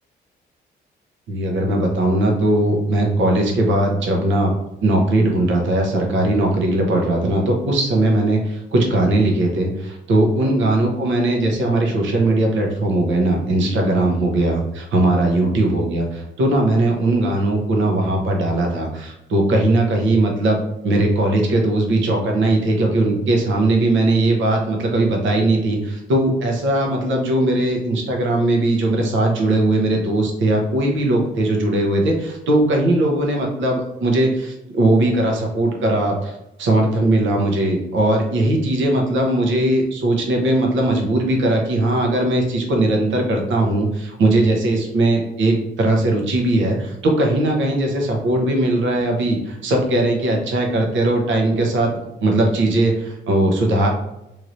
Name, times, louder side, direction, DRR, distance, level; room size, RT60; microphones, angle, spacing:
voice 1, 1.3-4.5 4.8-51.9 52.2-53.9, right 1 dB, 70° right, 0 dB, 0.9 m, -19 dB
3.2 x 2.7 x 2.6 m, 0.90 s
cardioid pair, 90°, 20 cm